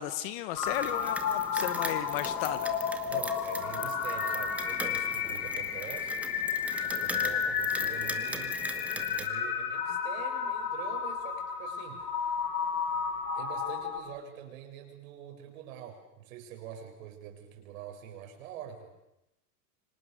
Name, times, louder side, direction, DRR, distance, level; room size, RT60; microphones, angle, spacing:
voice 1, 0.0-2.7, left 13 dB, 35° left, 13 dB, 1.3 m, -34 dB
sound 1, 0.5-14.0, left 7 dB, 65° left, 5.4 m, -32 dB
sound 2, 0.6-9.3, right 2 dB, 5° right, 1.0 m, -41 dB
voice 2, 3.1-6.4 6.8-12.4 13.3-18.9, right 9 dB, 55° right, 3 dB, 7.1 m, -45 dB
30.0 x 25.0 x 6.7 m, 0.89 s
supercardioid pair, 175°, 49 cm